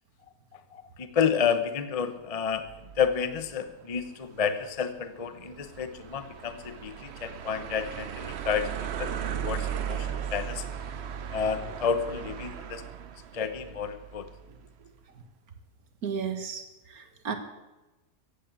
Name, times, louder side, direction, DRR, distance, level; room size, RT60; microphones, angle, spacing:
voice 1, 0.5-2.7 3.0-8.7 9.0-10.6 11.3-12.8 13.3-14.3, left 7 dB, 30° left, 10 dB, 0.8 m, -30 dB
sound 1, 2.5-14.7, right 9 dB, 55° right, 0.9 m, -37 dB
voice 2, 16.0-16.6 16.9-17.4, right 6 dB, 80° right, 8 dB, 2.0 m, -33 dB
15.0 x 8.4 x 8.9 m, 1.1 s
omnidirectional pair, 1.5 m